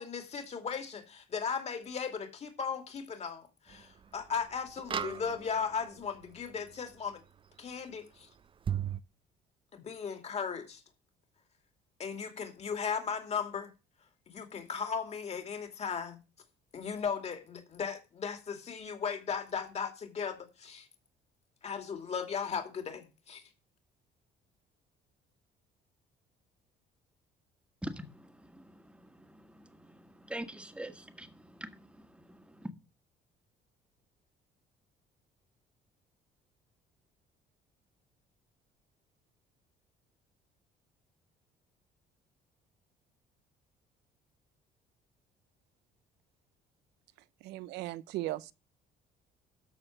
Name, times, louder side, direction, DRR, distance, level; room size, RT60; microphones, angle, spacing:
voice 1, 0.0-7.2 7.6-8.3 9.7-10.8 12.0-13.7 14.3-16.2 16.7-20.9 21.6-23.4, left 6 dB, 40° left, 2.6 m, -37 dB
sound 1, 3.7-3.8 4.8-5.8 8.7-9.0, right 8 dB, 30° right, 0.5 m, -34 dB
voice 2, 27.8-32.7, right 1 dB, 5° right, 1.5 m, -45 dB
voice 3, 47.4-48.5, right 16 dB, 90° right, 0.6 m, -37 dB
13.0 x 4.5 x 7.3 m
cardioid pair, 110°, 17 cm